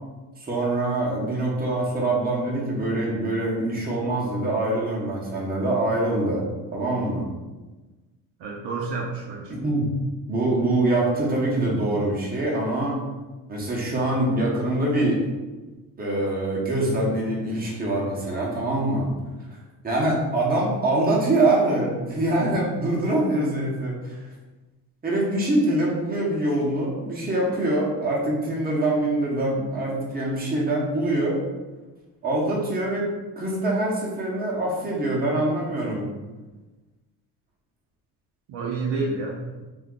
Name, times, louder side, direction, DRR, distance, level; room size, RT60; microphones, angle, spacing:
voice 1, 0.4-6.4 6.7-7.3 9.5-9.9 10.3-13.0 13.5-15.2 16.0-19.1 19.8-24.2 25.0-31.4 32.2-33.1 33.4-36.1, right 1 dB, 20° right, -4 dB, 0.9 m, -24 dB
voice 2, 8.4-9.5 38.5-39.4, right 3 dB, 65° right, -1 dB, 0.7 m, -29 dB
2.6 x 2.2 x 3.6 m, 1.2 s
cardioid pair, 95°, 47 cm